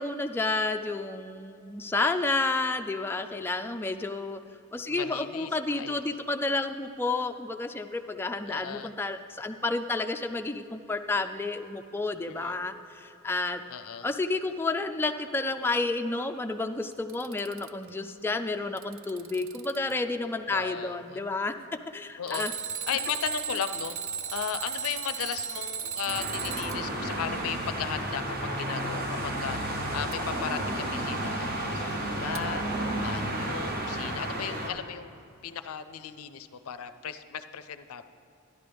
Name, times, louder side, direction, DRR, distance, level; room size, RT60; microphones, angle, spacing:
voice 1, 0.0-4.4 4.7-13.6 14.0-21.5 21.9-22.5, left 3 dB, 10° left, 6 dB, 0.3 m, -30 dB
voice 2, 4.9-6.0 8.5-8.9 12.3-12.6 13.7-14.1 20.5-21.2 22.2-22.5 22.9-24.0 24.3-31.5 31.7-38.0, left 8 dB, 75° left, 11 dB, 0.5 m, -36 dB
Alarm, 16.9-17.9 18.5-19.9 22.3-26.8 30.1-30.2 32.3-32.4, right 7 dB, 65° right, 0.4 m, -36 dB
sound 1, 26.0-34.7, right 1 dB, 45° right, 1.0 m, -32 dB
12.5 x 10.5 x 3.4 m, 2.7 s
head